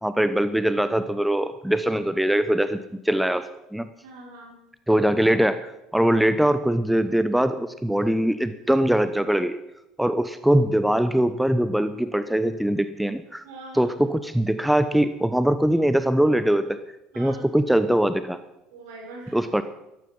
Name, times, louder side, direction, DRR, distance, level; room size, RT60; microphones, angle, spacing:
voice 1, 0.0-2.8 3.0-3.9 4.9-9.6 10.0-13.4 13.7-16.8 17.2-18.4 19.3-19.6, right 1 dB, 5° right, 12 dB, 0.9 m, -22 dB
voice 2, 4.0-4.6 13.4-14.0 17.1-17.5 18.7-19.4, right 2 dB, 70° right, -1 dB, 6.0 m, -42 dB
14.0 x 14.0 x 5.5 m, 0.91 s
figure-of-eight pair, 65°, 0 cm